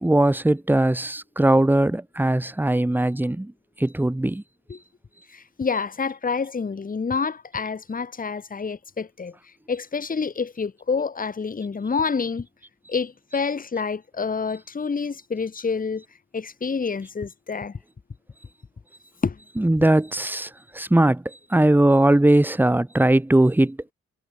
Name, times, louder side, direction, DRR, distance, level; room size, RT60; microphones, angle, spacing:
voice 1, 0.0-3.5 3.8-4.4 19.5-20.5 20.7-21.2 21.5-23.8, right 1 dB, 5° right, 1.2 m, -19 dB
voice 2, 5.3-12.5 12.9-16.0 16.3-17.8 19.2-19.4, left 5 dB, 30° left, 1.5 m, -28 dB
hypercardioid pair, 55°, 29 cm